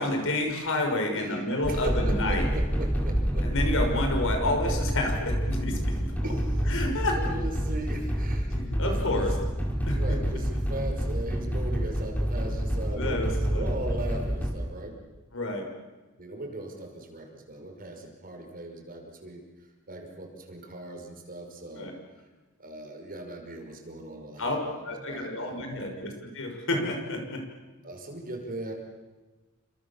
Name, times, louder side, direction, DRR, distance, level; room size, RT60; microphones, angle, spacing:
voice 1, 0.0-2.4 3.4-5.9 6.7-7.2 8.5-9.3 9.9-10.2 12.9-13.6 15.3-15.7 21.8-21.9 24.4-24.6 24.8-27.4, left 1 dB, 65° left, 3 dB, 6.3 m, -29 dB
voice 2, 1.1-3.5 6.2-6.8 7.1-9.3 9.8-15.0 16.2-19.4 19.9-21.9 22.6-25.9 27.8-28.7, right 1 dB, 40° right, 3 dB, 5.8 m, -39 dB
sound 1, 1.6-14.5, equal, 10° left, 5.2 m, -28 dB
29.5 x 27.0 x 7.4 m, 1.2 s
head